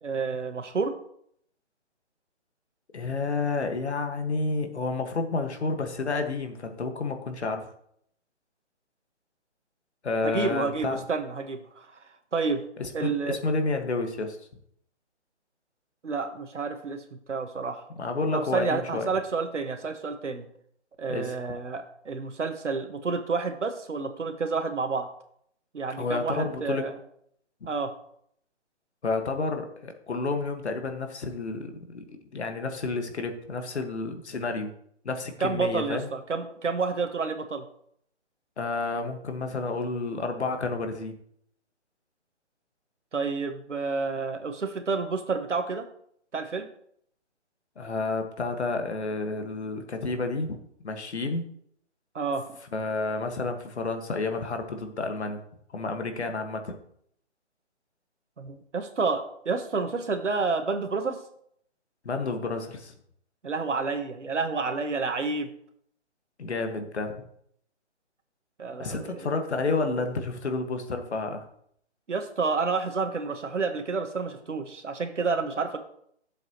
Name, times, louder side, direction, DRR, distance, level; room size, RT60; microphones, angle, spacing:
voice 1, 0.0-0.9 10.2-11.9 12.3-12.7 12.9-13.4 16.0-17.9 18.3-20.5 21.0-25.1 25.7-27.0 27.7-27.9 35.4-37.6 43.1-45.9 46.3-46.7 52.1-52.4 58.4-61.2 63.4-65.5 68.6-69.3 72.1-75.8, right 4 dB, 85° right, 7 dB, 1.6 m, -29 dB
voice 2, 2.9-7.7 10.0-11.0 12.8-14.4 18.0-19.1 21.1-21.3 26.0-26.9 29.0-32.1 32.3-34.7 35.0-36.1 38.6-41.2 47.8-51.5 52.7-55.4 55.7-56.8 62.0-62.9 66.4-67.2 68.8-71.5, left 3 dB, 70° left, 5 dB, 1.7 m, -30 dB
12.0 x 7.6 x 3.1 m, 0.68 s
hypercardioid pair, 160°, 35 cm